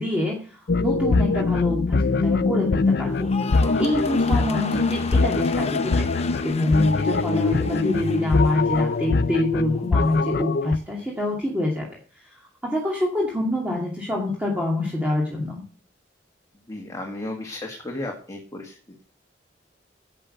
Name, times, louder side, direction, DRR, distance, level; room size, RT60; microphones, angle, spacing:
voice 1, 0.0-3.3 3.8-6.1 6.4-15.6, left 1 dB, 10° right, -3 dB, 2.4 m, -26 dB
sound 1, 0.7-10.8, left 3 dB, 60° left, 0.5 m, -23 dB
sound 2, 3.1-9.4 9.7-10.3, left 5 dB, 35° left, 0.9 m, -36 dB
voice 2, 3.6-3.9 16.7-19.0, left 1 dB, 20° left, 0 dB, 1.8 m, -34 dB
11.0 x 8.4 x 6.5 m, 0.42 s
head